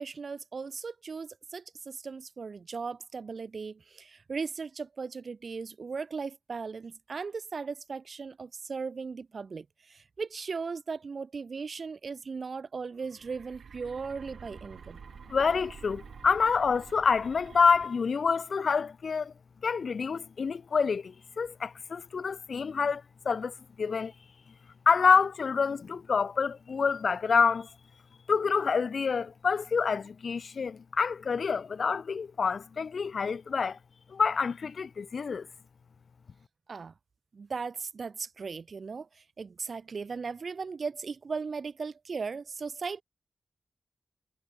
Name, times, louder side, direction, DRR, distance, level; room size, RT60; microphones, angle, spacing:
voice 1, 0.0-15.0 36.7-36.9 37.3-43.0, right 5 dB, 60° right, 1.0 m, -37 dB
sound 1, 12.9-17.9, right 6 dB, 80° right, 4.7 m, -49 dB
voice 2, 15.3-19.3 19.6-24.1 24.9-27.7 28.3-33.8 34.1-35.5, left 5 dB, 65° left, 0.5 m, -27 dB
wide cardioid pair, 85°, 0 cm